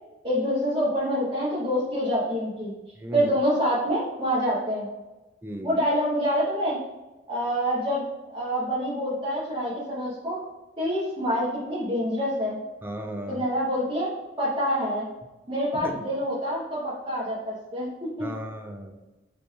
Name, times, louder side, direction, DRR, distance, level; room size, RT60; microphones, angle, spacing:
voice 1, 0.2-2.7 3.1-4.9 5.6-6.8 7.3-10.4 10.8-12.6 13.3-14.1 14.4-15.1 15.5-18.3, equal, 25° right, -9 dB, 0.8 m, -26 dB
voice 2, 3.0-3.3 5.4-5.8 12.8-13.5 15.7-16.0 18.2-18.9, right 1 dB, 10° right, 4 dB, 0.4 m, -35 dB
5.1 x 2.3 x 3.1 m, 1.1 s
head